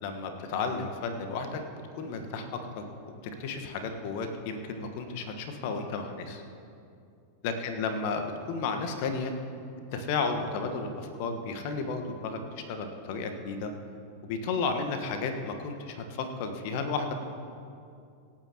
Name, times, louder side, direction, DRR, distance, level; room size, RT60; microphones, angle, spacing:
voice 1, 0.0-1.6 2.0-2.9 3.4-6.4 7.4-8.2 8.5-9.3 9.9-13.7 14.2-17.1, left 4 dB, 45° left, 6 dB, 1.4 m, -33 dB
26.0 x 8.8 x 3.0 m, 2.5 s
figure-of-eight pair, 90°, 0 cm